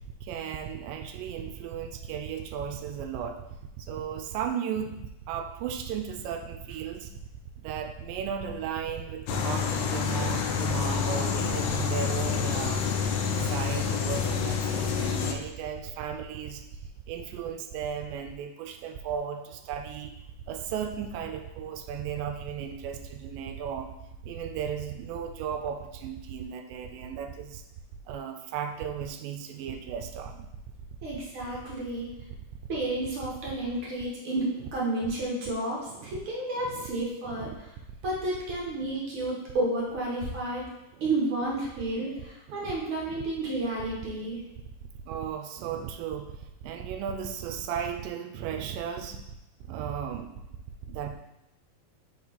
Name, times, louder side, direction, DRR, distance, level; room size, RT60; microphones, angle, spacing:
voice 1, 0.2-3.4 3.8-7.1 7.6-12.8 13.3-16.6 17.1-20.1 20.5-23.9 24.2-27.6 28.1-30.5 35.9-36.2 36.7-36.9 37.3-37.5 40.9-41.1 42.5-42.7 43.1-43.2 45.1-46.3 46.6-49.2 49.7-50.4 50.8-51.2, right 8 dB, 80° right, 6 dB, 2.2 m, -35 dB
sound 1, 9.3-15.3, left 6 dB, 80° left, 1.7 m, -28 dB
voice 2, 31.0-32.1 32.7-37.7 38.0-40.6 41.0-44.4, right 2 dB, 60° right, -4 dB, 1.5 m, -31 dB
5.0 x 4.5 x 4.1 m, 0.91 s
omnidirectional pair, 4.0 m